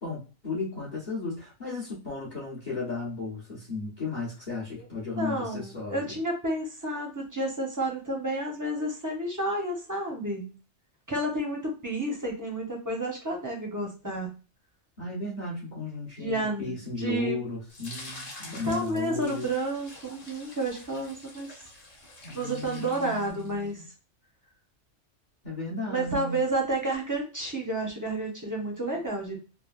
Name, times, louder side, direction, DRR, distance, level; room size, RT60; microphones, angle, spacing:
voice 1, 0.0-6.2 15.0-19.5 22.2-23.8 25.4-26.4, left 3 dB, 40° left, -5 dB, 1.0 m, -35 dB
voice 2, 5.2-10.5 11.1-14.3 16.2-17.4 18.6-21.5 22.3-23.8 25.9-29.4, right 2 dB, 20° right, -1 dB, 0.6 m, -31 dB
sound 1, 17.7-23.7, left 2 dB, 90° left, 1.4 m, -46 dB
3.2 x 2.1 x 2.3 m, 0.34 s
omnidirectional pair, 1.3 m